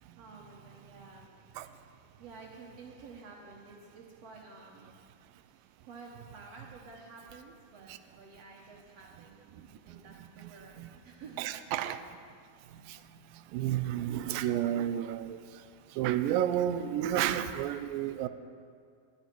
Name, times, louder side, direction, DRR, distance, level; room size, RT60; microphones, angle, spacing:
voice 1, 0.2-1.3 1.7-5.0 5.5-11.5, right 4 dB, 65° right, -1 dB, 1.7 m, -51 dB
voice 2, 9.6-10.0 10.4-10.5 10.8-10.9 11.4-12.1 12.7-13.0 13.3-15.6 15.9-18.3, right 11 dB, 85° right, 11 dB, 2.3 m, -32 dB
17.0 x 11.0 x 4.5 m, 2.2 s
omnidirectional pair, 3.9 m